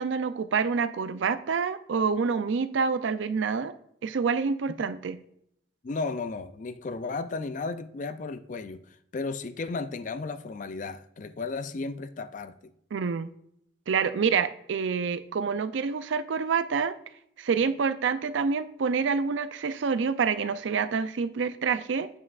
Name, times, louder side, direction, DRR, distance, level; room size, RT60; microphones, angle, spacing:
voice 1, 0.0-3.7 4.0-5.2 12.9-13.3 13.9-16.9 17.4-22.1, right 5 dB, 75° right, 13 dB, 0.4 m, -27 dB
voice 2, 5.8-8.8 9.1-12.5, left 3 dB, 40° left, 12 dB, 0.4 m, -34 dB
8.3 x 7.3 x 2.4 m, 0.73 s
head